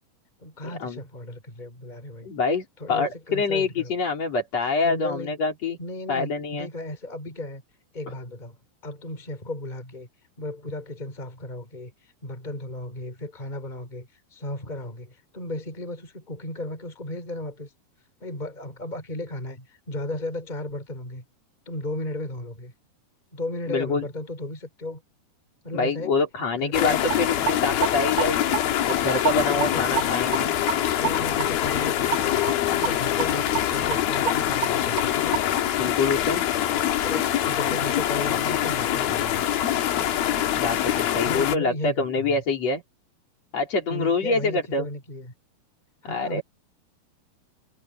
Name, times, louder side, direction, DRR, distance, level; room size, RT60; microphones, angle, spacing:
voice 1, 0.4-2.3 2.8-3.9 4.8-5.4 5.8-7.6 7.9-10.1 10.4-17.7 18.2-21.2 21.7-22.7 23.3-25.0 25.6-26.2 26.5-27.0 29.5-30.1 31.0-32.5 32.8-35.4 37.0-39.4 41.2-42.4 43.9-45.3 46.0-46.4, left 1 dB, 10° left, 4.4 m, -35 dB
voice 2, 2.2-5.8 6.1-6.7 23.7-24.1 25.7-28.5 28.9-30.6 35.8-36.4 40.5-42.8 43.5-44.9 46.1-46.4, left 4 dB, 40° left, 5.2 m, -25 dB
sound 1, 26.7-41.6, left 11 dB, 70° left, 3.2 m, -24 dB
sound 2, 27.1-27.2 27.5-28.3 28.5-29.3 29.6-29.7 30.0-30.1 30.3-30.4 30.7-30.8 31.0-31.1 31.4-31.5 31.8-31.9 32.1-32.2 32.5-32.9 33.2-33.3 33.5-33.6 33.9-34.0 34.3-35.1 35.3-35.4, right 12 dB, 75° right, 1.8 m, -26 dB
omnidirectional pair, 4.7 m